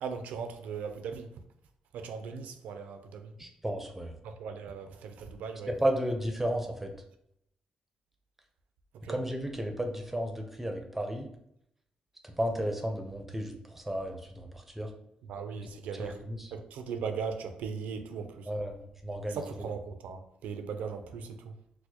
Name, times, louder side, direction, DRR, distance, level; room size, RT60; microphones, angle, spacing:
voice 1, 0.0-1.4 1.9-3.4 4.2-5.8 9.0-9.2 15.3-16.2 16.5-18.5 19.3-21.5, right 6 dB, 90° right, 0.4 m, -38 dB
voice 2, 3.4-4.2 5.7-6.9 9.0-11.3 12.2-14.9 16.0-16.5 18.5-18.8 19.0-19.4, right 1 dB, 10° right, 0.6 m, -33 dB
4.5 x 2.1 x 2.8 m
cardioid pair, 95°, 2 cm